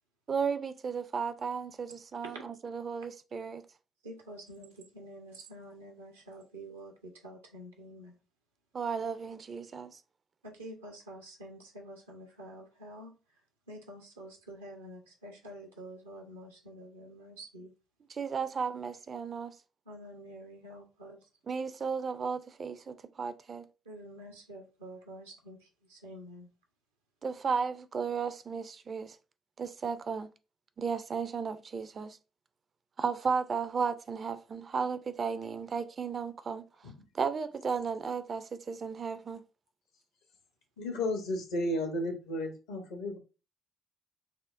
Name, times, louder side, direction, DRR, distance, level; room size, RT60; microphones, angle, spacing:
voice 1, 0.3-3.6 8.7-10.0 18.1-19.5 21.5-23.6 27.2-29.2 29.6-30.3 30.8-32.2 33.0-36.7 37.1-39.4, right 5 dB, 45° right, 0.4 m, -34 dB
voice 2, 4.0-8.2 10.4-13.1 13.7-17.7 19.9-21.3 23.8-26.5, right 1 dB, 85° right, 0.7 m, -48 dB
voice 3, 40.8-43.2, left 1 dB, 75° left, 0.8 m, -33 dB
6.2 x 2.1 x 2.5 m
figure-of-eight pair, 45°, 0 cm